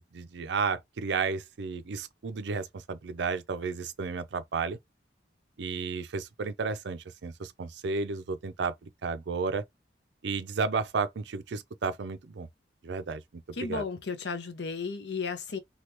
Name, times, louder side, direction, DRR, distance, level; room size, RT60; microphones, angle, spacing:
voice 1, 0.0-4.8 5.6-9.6 10.2-12.5 12.8-13.8, right 4 dB, 70° right, 0.4 m, -33 dB
voice 2, 13.5-15.6, left 4 dB, 65° left, 0.6 m, -34 dB
2.9 x 2.3 x 3.2 m
head